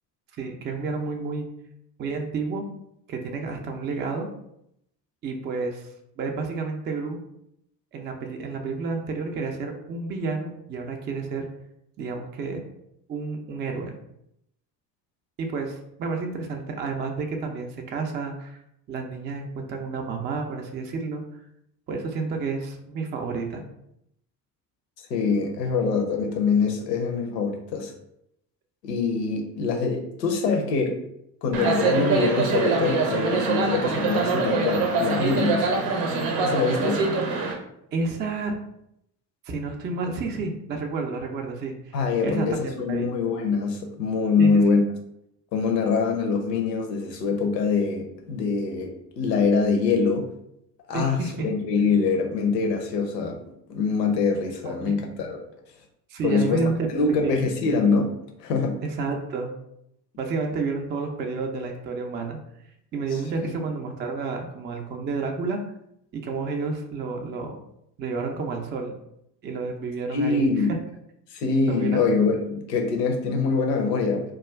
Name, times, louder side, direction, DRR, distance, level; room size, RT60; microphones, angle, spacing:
voice 1, 0.3-1.5 2.0-2.6 3.1-4.3 5.2-5.9 6.2-7.2 7.9-11.5 12.0-12.6 13.1-13.9 15.4-18.6 18.9-21.2 21.9-23.6 37.9-38.6 39.4-43.1 44.4-44.6 50.9-51.5 54.6-54.9 56.1-56.9 57.2-57.4 58.8-59.5 60.2-62.4 62.9-65.6 66.1-67.6 68.0-68.9 69.4-70.5 71.7-72.0, right 4 dB, 25° right, 3 dB, 0.4 m, -30 dB
voice 2, 25.1-27.9 28.8-31.0 31.4-35.7 36.4-37.0 41.9-44.8 45.5-50.3 50.9-53.4 53.7-55.4 56.2-56.6 56.9-58.1 58.4-58.8 63.4-63.5 70.1-70.7 71.3-74.2, left 4 dB, 85° left, 3 dB, 0.6 m, -24 dB
sound 1, 31.5-37.5, right 4 dB, 75° right, 0.7 m, -24 dB
2.3 x 2.3 x 3.2 m, 0.78 s
hypercardioid pair, 60°, 48 cm